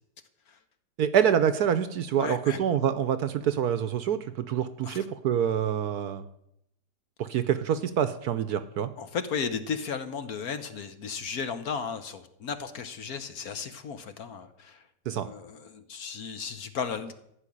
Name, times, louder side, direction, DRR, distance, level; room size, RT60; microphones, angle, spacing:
voice 1, 1.0-6.2 7.2-8.9 15.1-15.3, right 9 dB, 65° right, 12 dB, 1.1 m, -26 dB
voice 2, 2.2-2.6 4.8-5.1 9.0-17.2, left 6 dB, 55° left, 10 dB, 1.3 m, -35 dB
14.5 x 6.0 x 9.9 m, 0.78 s
omnidirectional pair, 2.0 m